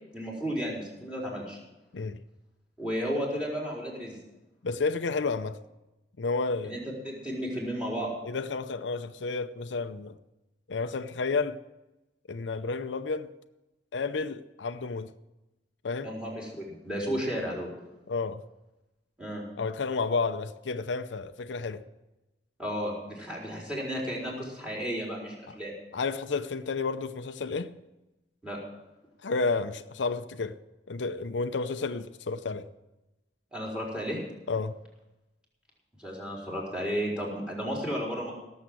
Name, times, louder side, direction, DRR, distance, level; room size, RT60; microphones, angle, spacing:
voice 1, 0.1-1.6 2.8-4.2 6.6-6.8 7.0-8.1 16.0-17.7 19.2-19.4 22.6-25.7 28.4-28.6 33.5-34.2 36.0-38.3, equal, 5° right, 4.3 m, -33 dB
voice 2, 4.6-5.6 6.2-6.7 8.2-10.1 10.7-11.6 12.3-13.3 13.9-15.1 15.8-16.1 18.1-18.4 19.6-21.8 25.9-27.7 29.2-30.6 30.9-32.7 34.5-34.7, left 4 dB, 85° left, 0.6 m, -31 dB
18.0 x 7.3 x 7.8 m
head